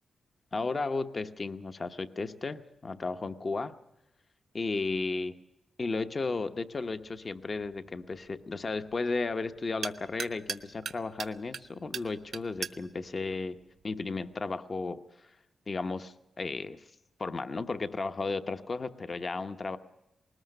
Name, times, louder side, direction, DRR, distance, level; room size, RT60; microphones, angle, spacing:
voice 1, 0.5-3.7 4.5-5.3 5.8-13.6 13.8-15.0 15.7-16.8 17.2-19.8, left 3 dB, 35° left, 9 dB, 0.9 m, -34 dB
sound 1, 6.7-14.4, right 6 dB, 65° right, 1.0 m, -43 dB
20.5 x 19.0 x 6.7 m, 0.93 s
wide cardioid pair, 115°, 0 cm